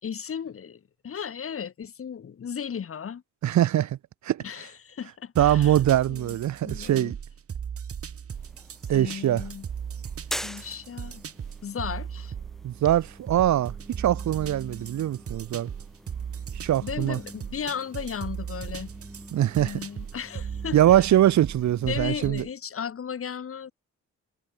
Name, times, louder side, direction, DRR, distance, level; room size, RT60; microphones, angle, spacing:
voice 1, 0.0-3.2 4.4-5.8 6.1-6.4 6.6-7.1 8.9-9.6 10.4-11.2 11.6-12.3 16.8-18.9 19.6-21.0 21.9-23.7, left 7 dB, 45° left, 3.1 m, -35 dB
voice 2, 3.4-4.0 4.2-4.4 5.4-7.2 8.9-9.4 12.6-15.7 16.5-17.2 19.3-19.8 20.7-22.4, right 12 dB, 70° right, 1.6 m, -22 dB
sound 1, 5.4-22.5, right 7 dB, 50° right, 4.4 m, -38 dB
sound 2, 8.3-22.0, equal, ahead, 4.5 m, -45 dB
cardioid pair, 90°, 30 cm